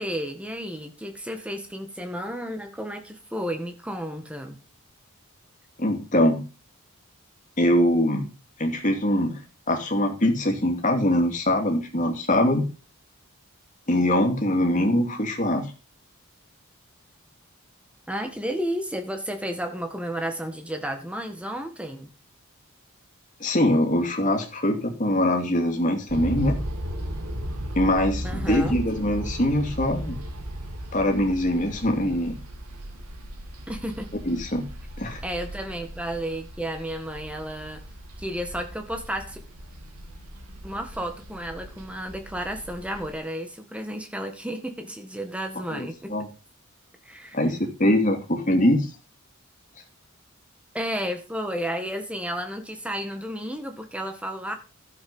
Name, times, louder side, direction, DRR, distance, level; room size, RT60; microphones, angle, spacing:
voice 1, 0.0-4.6 18.1-22.1 28.2-28.8 33.7-34.1 35.2-37.8 38.2-39.4 40.6-46.3 47.1-47.4 50.7-54.5, equal, 5° right, 6 dB, 1.7 m, -32 dB
voice 2, 5.8-6.5 7.6-8.3 8.6-9.4 9.7-12.7 13.9-15.7 23.4-26.6 27.8-30.2 30.9-32.4 34.3-34.7 35.0-35.2 45.7-46.3 47.3-48.9, left 1 dB, 35° left, 3 dB, 2.6 m, -23 dB
sound 1, 26.1-43.1, equal, 90° right, 2.6 m, -36 dB
13.0 x 7.4 x 5.6 m, 0.34 s
head